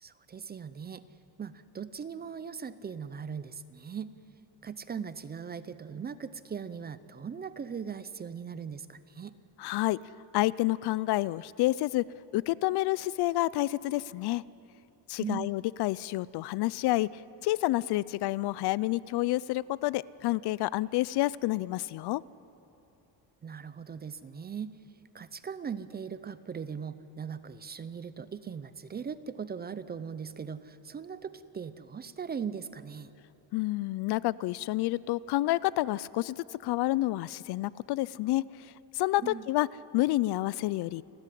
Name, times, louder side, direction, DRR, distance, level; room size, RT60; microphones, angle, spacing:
voice 1, 0.0-1.0 1.4-4.1 4.6-9.3 15.2-15.5 23.4-24.8 25.1-33.1 39.2-39.4, right 6 dB, 20° right, 14 dB, 0.5 m, -39 dB
voice 2, 9.6-10.0 10.3-12.0 12.3-14.4 15.1-17.1 17.4-22.2 33.5-36.4 36.6-38.4 38.9-39.7 39.9-41.0, left 17 dB, 60° left, 21 dB, 0.5 m, -29 dB
29.5 x 13.5 x 10.0 m, 2.8 s
cardioid pair, 160°, 45 cm